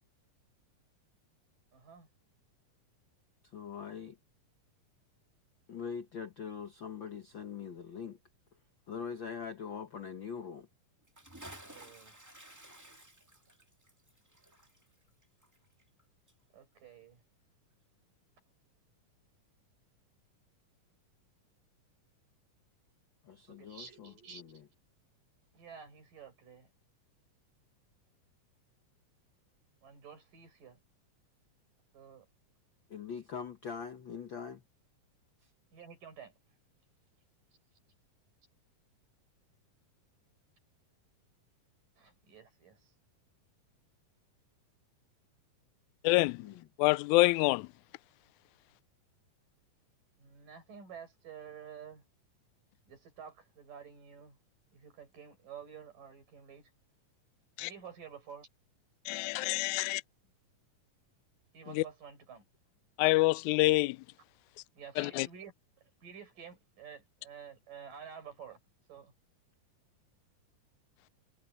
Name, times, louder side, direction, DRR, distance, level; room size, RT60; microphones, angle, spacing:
voice 1, 1.7-2.1 11.7-12.2 16.5-17.2 23.5-24.6 25.5-26.7 29.8-30.8 31.9-32.3 35.7-36.6 42.0-42.9 50.2-52.1 52.9-54.4 54.7-56.7 57.6-58.5 60.2-60.3 61.5-62.4 64.7-68.6 68.9-69.1, right 7 dB, 75° right, 7.8 m, -51 dB
voice 2, 3.5-4.2 5.7-8.2 8.9-10.7 23.2-24.4 32.9-34.6 46.4-46.6, left 6 dB, 65° left, 1.2 m, -42 dB
Bathtub (filling or washing) / Splash splatter, 11.0-16.0 16.3-16.4, right 1 dB, 10° right, 1.2 m, -53 dB
voice 3, 46.0-46.4 46.8-47.7 57.6-57.7 59.1-60.0 63.0-64.0 65.0-65.3, left 21 dB, 80° left, 1.7 m, -26 dB
omnidirectional pair, 3.9 m